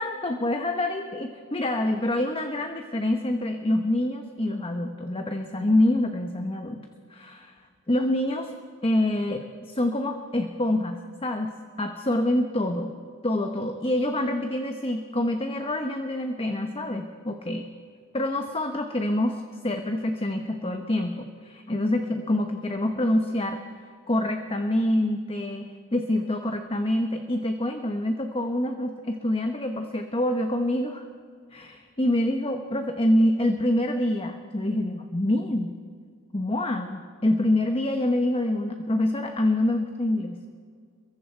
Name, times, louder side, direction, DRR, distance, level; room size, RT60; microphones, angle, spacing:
voice 1, 0.0-6.8 7.1-7.5 7.9-8.5 8.8-11.5 11.8-12.9 13.2-17.6 18.1-23.6 24.1-31.0 31.5-35.7 36.3-40.5, left 1 dB, 25° left, 5 dB, 1.1 m, -26 dB
28.5 x 23.0 x 4.6 m, 2.1 s
head